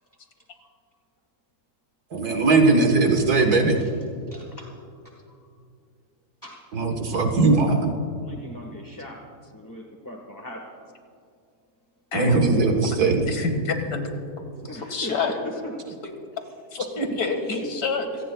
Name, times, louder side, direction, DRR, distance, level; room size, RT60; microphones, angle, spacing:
voice 1, 2.1-3.8 6.7-8.0 12.1-13.3, right 3 dB, 80° right, 3 dB, 1.8 m, -19 dB
voice 2, 4.3-4.7 5.3-5.4 6.4-6.6 8.0-9.2 9.5-10.9 14.7-15.7 17.5-17.8 18.2-18.3, left 1 dB, 15° left, 0 dB, 1.4 m, -39 dB
voice 3, 12.1-12.5 12.8-13.0 13.3-14.1 14.4-14.5 14.9-15.4 16.7-18.1, left 3 dB, 75° left, 5 dB, 2.3 m, -27 dB
26.5 x 18.5 x 2.3 m, 2.4 s
omnidirectional pair, 1.6 m